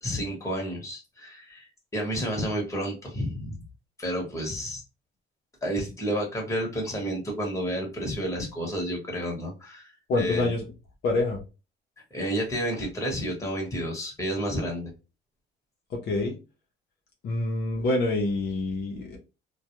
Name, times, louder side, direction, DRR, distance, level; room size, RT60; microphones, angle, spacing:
voice 1, 0.0-3.6 4.0-4.8 5.6-10.5 12.1-14.9, equal, 15° left, -1 dB, 1.1 m, -31 dB
voice 2, 10.1-10.6 11.0-11.4 15.9-16.3 17.2-19.2, left 2 dB, 60° left, 1 dB, 0.7 m, -26 dB
2.3 x 2.2 x 2.9 m, 0.29 s
cardioid pair, 115°, 20 cm